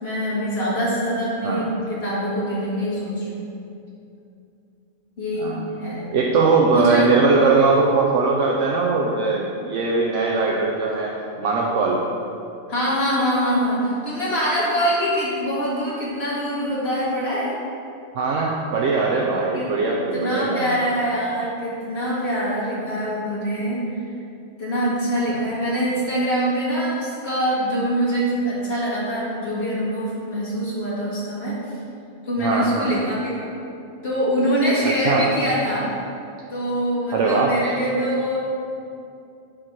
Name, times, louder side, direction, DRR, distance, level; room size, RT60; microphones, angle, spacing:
voice 1, 0.0-3.4 5.2-6.2 6.7-7.1 12.7-17.5 19.5-19.6 20.1-23.9 24.6-31.5 32.3-33.5 34.0-35.9 36.5-38.4, equal, 55° left, -8 dB, 2.0 m, -24 dB
voice 2, 5.4-5.7 6.1-12.0 18.1-20.7 22.8-22.9 25.3-25.4 32.4-32.9 34.8-35.3 37.1-37.6, right 4 dB, 80° right, -2 dB, 1.0 m, -20 dB
8.9 x 3.1 x 5.8 m, 2.6 s
omnidirectional pair, 1.2 m